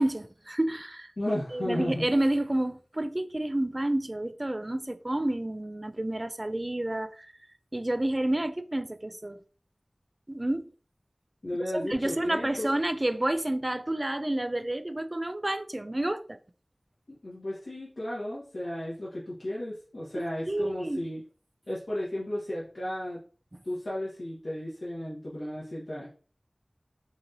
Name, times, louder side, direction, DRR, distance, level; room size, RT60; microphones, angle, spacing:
voice 1, 0.0-1.1 1.5-7.3 7.7-9.4 10.3-10.7 11.7-16.4 20.1-21.1, right 1 dB, 35° right, 0.3 m, -29 dB
voice 2, 1.2-2.0 11.4-12.7 17.1-21.2 21.7-23.2 23.6-26.1, left 1 dB, 90° left, 1.4 m, -34 dB
4.7 x 2.9 x 2.6 m
wide cardioid pair, 50°, 0 cm